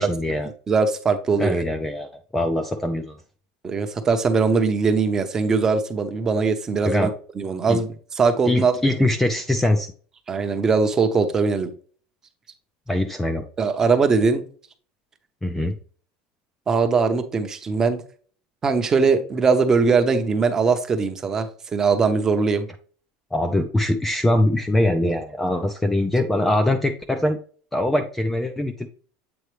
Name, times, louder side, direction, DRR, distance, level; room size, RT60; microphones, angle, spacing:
voice 1, 0.0-0.5 1.4-3.2 6.9-7.1 7.7-7.8 8.5-9.9 12.9-13.5 15.4-15.8 23.3-27.4 27.7-28.9, left 1 dB, 5° left, 7 dB, 0.4 m, -22 dB
voice 2, 0.7-1.6 3.6-7.1 7.4-8.9 10.3-11.7 13.6-14.4 16.7-18.0 18.6-22.7, right 4 dB, 20° right, 7 dB, 0.7 m, -21 dB
7.9 x 4.1 x 3.2 m, 0.42 s
cardioid pair, 165°, 3 cm